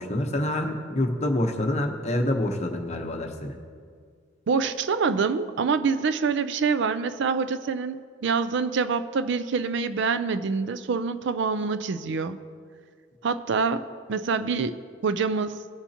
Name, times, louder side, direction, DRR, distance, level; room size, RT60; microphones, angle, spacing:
voice 1, 0.0-3.6, left 1 dB, 35° left, 4 dB, 0.9 m, -27 dB
voice 2, 4.5-12.4 13.2-13.8 14.1-14.8 15.0-15.6, right 5 dB, 65° right, 12 dB, 0.4 m, -26 dB
18.0 x 7.0 x 2.8 m, 2.1 s
head